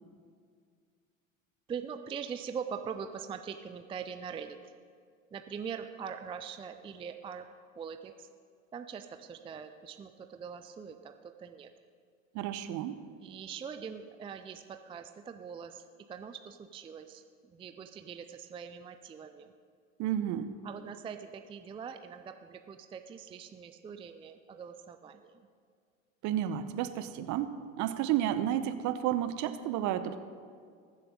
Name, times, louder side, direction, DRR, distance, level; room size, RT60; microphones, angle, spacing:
voice 1, 1.7-4.7 5.3-7.5 7.8-8.3 8.7-11.7 13.2-19.5 20.6-25.5, right 7 dB, 15° right, 7 dB, 0.4 m, -42 dB
voice 2, 12.3-13.0 20.0-20.5 26.2-30.2, right 11 dB, 45° right, 11 dB, 0.9 m, -31 dB
21.0 x 7.6 x 3.8 m, 2.1 s
hypercardioid pair, 80°, 40 cm